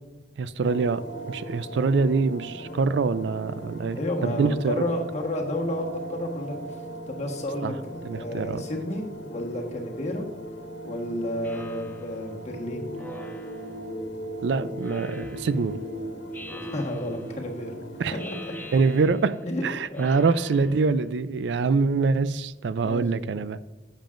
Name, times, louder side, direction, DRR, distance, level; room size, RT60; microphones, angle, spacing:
voice 1, 0.4-4.8 7.6-7.7 8.0-8.6 14.4-15.8 18.0-18.2 18.7-23.6, right 4 dB, 75° right, 15 dB, 0.4 m, -25 dB
sound 1, 0.6-19.1, right 1 dB, 75° left, 1.3 m, -39 dB
voice 2, 3.9-6.6 7.1-10.3 10.8-12.9 16.5-17.7 18.3-18.5 19.4-19.6 19.9-20.1 22.8-23.0, left 1 dB, 40° left, 1 dB, 1.4 m, -31 dB
Speech synthesizer, 11.4-12.2 13.0-13.9 14.8-15.6 16.3-17.3 18.2-19.4 19.9-21.0, left 1 dB, 10° left, 0.9 m, -45 dB
10.5 x 7.4 x 2.5 m, 1.2 s
head